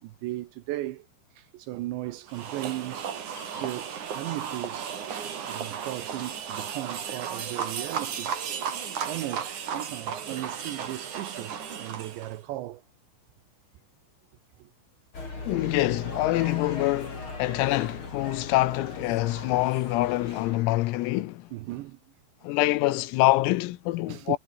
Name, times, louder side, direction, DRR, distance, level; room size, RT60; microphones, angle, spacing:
voice 1, 0.0-1.1 1.4-3.1 3.4-5.0 5.5-8.3 9.0-12.8 14.6-14.7 21.5-22.0 24.1-24.4, right 16 dB, 75° right, 2.8 m, -36 dB
sound 1, 2.3-12.4, right 7 dB, 45° right, 3.4 m, -34 dB
sound 2, 15.1-20.6, left 3 dB, 25° left, 6.9 m, -39 dB
voice 2, 15.5-21.5 22.4-24.4, left 18 dB, 90° left, 3.8 m, -25 dB
omnidirectional pair, 5.9 m